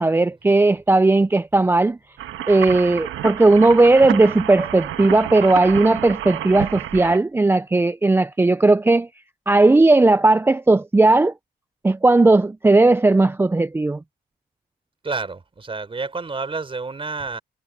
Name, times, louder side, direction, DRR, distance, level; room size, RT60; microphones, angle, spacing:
voice 1, 0.0-2.0 2.5-9.1 9.5-11.3 11.8-14.0, right 2 dB, 10° right, 0.4 m, -16 dB
sound 1, 2.2-7.2, right 12 dB, 80° right, 1.6 m, -30 dB
voice 2, 15.0-17.4, right 4 dB, 25° right, 3.9 m, -29 dB
cardioid pair, 90°, 20 cm